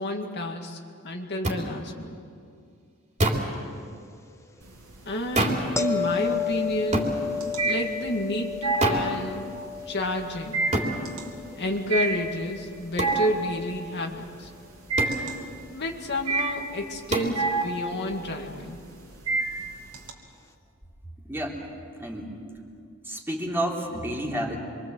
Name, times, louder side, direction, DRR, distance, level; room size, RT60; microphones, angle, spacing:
voice 1, 0.0-2.2 5.0-7.2 7.7-9.5 9.9-10.7 11.6-14.5 15.7-18.8, left 1 dB, 50° left, 2 dB, 2.1 m, -30 dB
sound 1, 1.4-1.6 3.2-3.5 5.4-5.7 6.9-7.2 8.8-9.1 10.7-11.0 13.0-13.2 15.0-15.2 17.1-17.4, right 1 dB, 35° right, 3.4 m, -25 dB
sound 2, 4.6-5.3 5.6-20.1, right 3 dB, 85° right, 2.9 m, -29 dB
sound 3, 5.8-12.7 18.0-18.2, left 6 dB, 15° left, 1.2 m, -33 dB
voice 2, 21.2-21.6 22.0-22.3 23.0-24.6, right 1 dB, 10° right, -2 dB, 3.3 m, -30 dB
27.0 x 24.5 x 7.9 m, 2.3 s
head